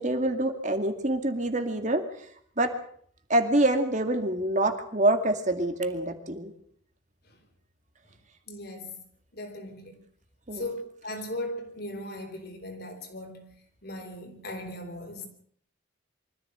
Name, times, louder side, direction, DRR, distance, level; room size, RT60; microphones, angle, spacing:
voice 1, 0.0-2.3 2.6-2.7 3.3-6.5 10.5-10.7, right 1 dB, 35° right, 2.2 m, -26 dB
voice 2, 8.5-9.0 9.3-10.0 10.5-13.5 13.8-15.3, left 1 dB, 50° left, 4.3 m, -38 dB
24.5 x 14.5 x 8.1 m
head